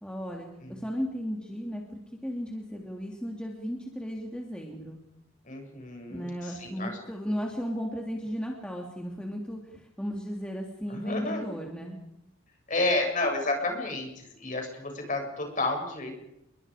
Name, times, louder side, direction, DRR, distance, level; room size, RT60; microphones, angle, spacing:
voice 1, 0.0-5.0 6.1-12.0, equal, 5° left, 0 dB, 2.9 m, -35 dB
voice 2, 5.5-6.9 10.9-11.4 12.7-16.1, left 2 dB, 40° left, 3 dB, 7.2 m, -30 dB
29.0 x 23.0 x 5.1 m, 0.87 s
head